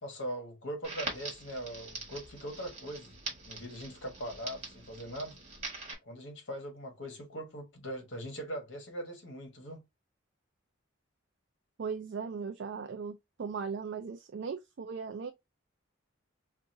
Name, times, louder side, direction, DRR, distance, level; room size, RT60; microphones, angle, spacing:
voice 1, 0.0-3.1 3.4-5.4 6.0-9.8, equal, 65° left, 1.2 m, -41 dB
Crackle, 0.8-5.9, right 3 dB, 30° right, 1.4 m, -43 dB
voice 2, 11.8-15.3, right 5 dB, 55° right, 0.4 m, -38 dB
4.6 x 2.5 x 2.6 m
head